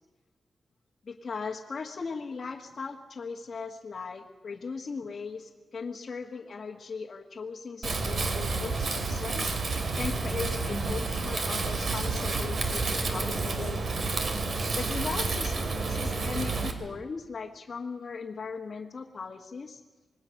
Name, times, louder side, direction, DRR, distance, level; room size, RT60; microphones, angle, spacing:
voice 1, 1.0-14.0 14.8-15.6 15.9-19.8, left 5 dB, 45° left, -1 dB, 1.5 m, -38 dB
Wind, 7.8-16.7, right 3 dB, 50° right, 2.8 m, -30 dB
26.0 x 21.0 x 6.5 m, 1.2 s
wide cardioid pair, 140°, 0 cm